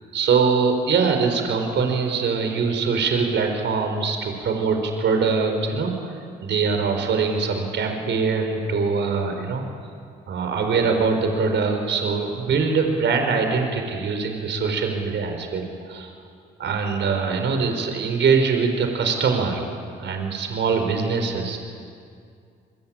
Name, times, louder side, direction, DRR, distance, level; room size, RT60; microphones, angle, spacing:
voice 1, 0.1-6.1 6.4-9.7 10.3-16.1 16.6-19.6 20.0-21.6, right 5 dB, 65° right, 5 dB, 4.8 m, -23 dB
28.5 x 23.0 x 9.0 m, 2.3 s
cardioid pair, 90°, 20 cm